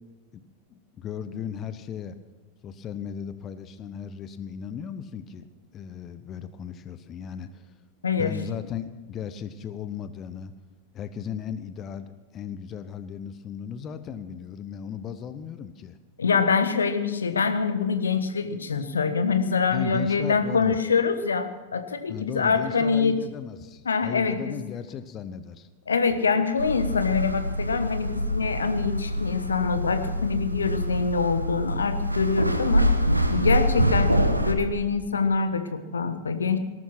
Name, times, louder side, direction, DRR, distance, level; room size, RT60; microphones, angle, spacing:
voice 1, 0.3-2.2 2.6-5.5 5.7-7.7 8.2-10.5 10.9-16.0 19.7-20.8 22.1-25.7, left 8 dB, 30° left, 12 dB, 0.9 m, -36 dB
voice 2, 8.0-8.4 16.2-23.2 23.8-24.6 25.9-32.9 33.3-36.6, left 5 dB, 70° left, 10 dB, 1.3 m, -25 dB
sound 1, 26.6-34.5, equal, 85° right, 1.2 m, -25 dB
18.5 x 12.5 x 5.9 m, 1.2 s
figure-of-eight pair, 90°, 0 cm